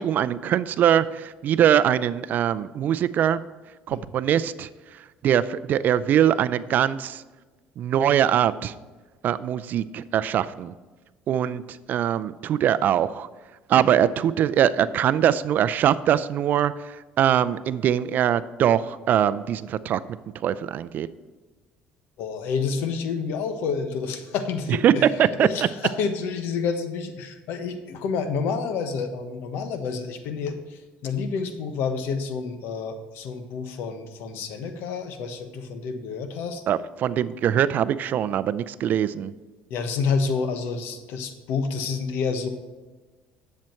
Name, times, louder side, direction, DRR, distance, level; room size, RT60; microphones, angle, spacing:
voice 1, 0.0-3.4 3.9-4.7 5.2-7.2 7.8-8.7 9.2-10.7 11.3-13.3 13.7-20.0 20.4-21.1 24.7-25.7 36.7-39.3, right 10 dB, 50° right, 16 dB, 0.5 m, -22 dB
voice 2, 22.2-25.1 25.4-36.6 39.7-42.5, left 5 dB, 75° left, 8 dB, 1.3 m, -29 dB
10.5 x 7.6 x 4.6 m, 1.3 s
cardioid pair, 125°, 4 cm